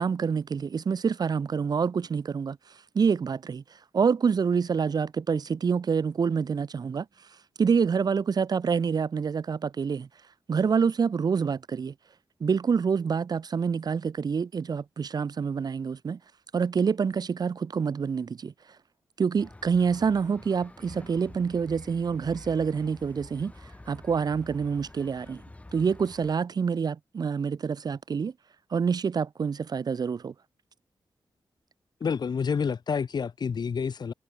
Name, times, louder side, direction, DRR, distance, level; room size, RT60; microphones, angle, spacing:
voice 1, 0.0-2.6 2.9-3.6 3.9-7.1 7.6-10.1 10.5-11.9 12.4-16.2 16.5-18.5 19.2-23.5 23.9-25.4 25.7-28.3 28.7-30.3, right 6 dB, 55° right, 0.9 m, -27 dB
sound 1, 19.4-26.3, left 2 dB, 15° left, 6.4 m, -48 dB
voice 2, 32.0-34.1, left 6 dB, 60° left, 2.3 m, -28 dB
wide cardioid pair, 105°, 8 cm